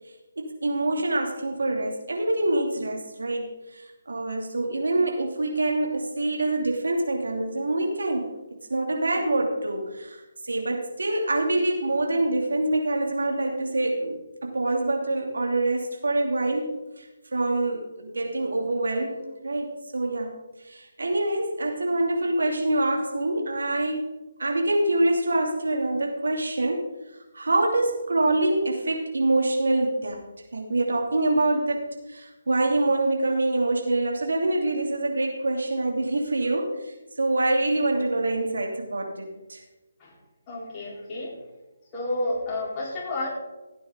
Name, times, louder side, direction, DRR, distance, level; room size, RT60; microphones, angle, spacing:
voice 1, 0.4-8.3 8.7-20.3 20.6-24.1 24.4-26.9 27.3-30.2 30.5-39.6, right 2 dB, 70° right, 1 dB, 2.8 m, -25 dB
voice 2, 40.5-41.3 41.9-43.3, left 2 dB, 25° left, -5 dB, 4.4 m, -30 dB
16.0 x 9.1 x 3.9 m, 1.1 s
figure-of-eight pair, 145°, 0 cm